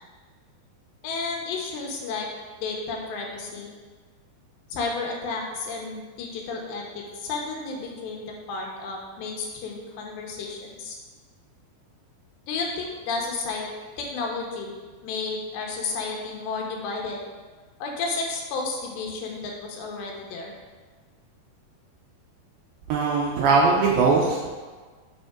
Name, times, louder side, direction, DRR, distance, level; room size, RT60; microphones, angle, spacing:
voice 1, 1.0-2.3 2.6-3.7 4.7-11.0 12.5-13.7 14.0-14.7 15.0-17.2 17.8-20.5, left 4 dB, 85° left, 0 dB, 3.2 m, -32 dB
voice 2, 22.9-24.5, right 4 dB, 80° right, -3 dB, 2.2 m, -20 dB
6.6 x 5.3 x 3.7 m, 1.4 s
omnidirectional pair, 4.8 m